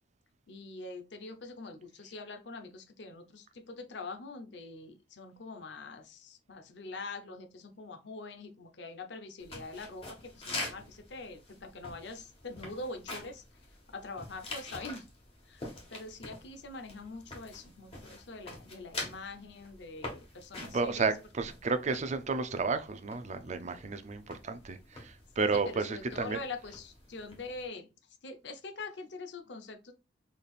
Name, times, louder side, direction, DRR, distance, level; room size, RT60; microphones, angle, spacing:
voice 1, 0.5-13.4 13.9-15.0 15.5-15.6 15.9-20.9 25.9-27.9 28.2-29.9, left 3 dB, 70° left, 0.7 m, -44 dB
sound 1, 9.4-27.7, left 2 dB, 35° left, 1.5 m, -46 dB
voice 2, 20.6-26.4, right 4 dB, 40° right, 0.5 m, -32 dB
4.1 x 3.4 x 2.4 m
head